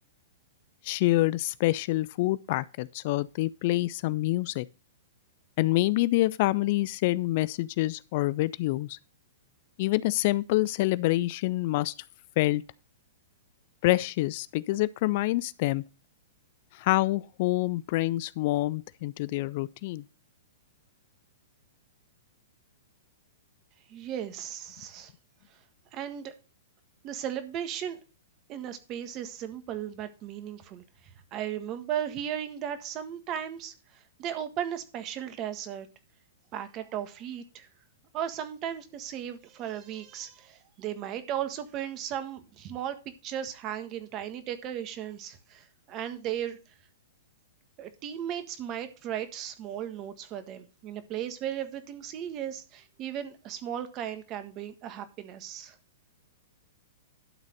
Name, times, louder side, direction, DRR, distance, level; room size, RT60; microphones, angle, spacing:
voice 1, 0.8-4.7 5.6-9.0 9.8-11.9 12.4-12.6 13.8-15.8 16.7-20.0, left 18 dB, 50° left, 0.4 m, -26 dB
voice 2, 23.9-25.1 25.9-26.3 27.0-28.0 28.5-30.8 31.3-35.9 36.5-37.7 38.1-42.9 43.2-46.6 47.8-55.8, right 10 dB, 35° right, 1.5 m, -36 dB
12.0 x 4.1 x 6.5 m
hypercardioid pair, 120°, 0 cm